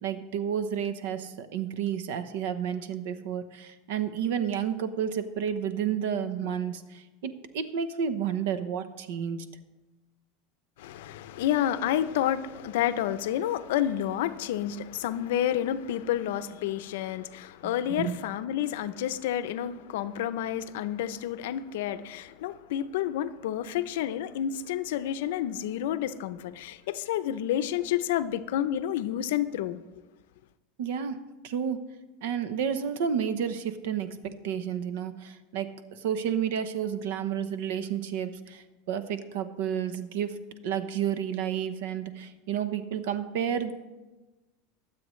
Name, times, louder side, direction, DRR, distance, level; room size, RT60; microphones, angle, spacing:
voice 1, 0.0-9.4 17.6-18.2 30.8-31.2 31.4-31.8 32.2-34.1 34.4-40.3 40.6-43.7, right 8 dB, 70° right, 0.9 m, -31 dB
voice 2, 10.8-29.8, left 11 dB, 80° left, 0.6 m, -30 dB
22.5 x 7.7 x 3.2 m
supercardioid pair, 170°, 0 cm